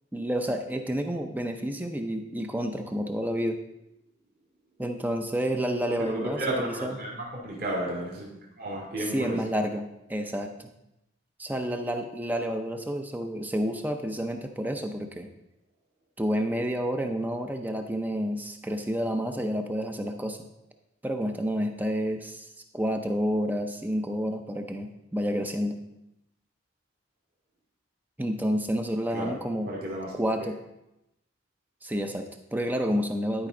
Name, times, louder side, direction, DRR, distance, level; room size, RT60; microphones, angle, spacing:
voice 1, 0.1-3.6 4.8-7.0 9.0-10.7 11.4-15.3 16.2-20.5 21.0-22.5 22.7-25.8 28.2-29.7 30.1-30.6 31.8-33.5, equal, 10° right, 5 dB, 0.5 m, -29 dB
voice 2, 6.0-8.3 8.6-9.4 29.1-29.4 29.7-30.1, right 1 dB, 45° right, -4 dB, 1.9 m, -32 dB
12.0 x 5.2 x 3.8 m, 0.88 s
head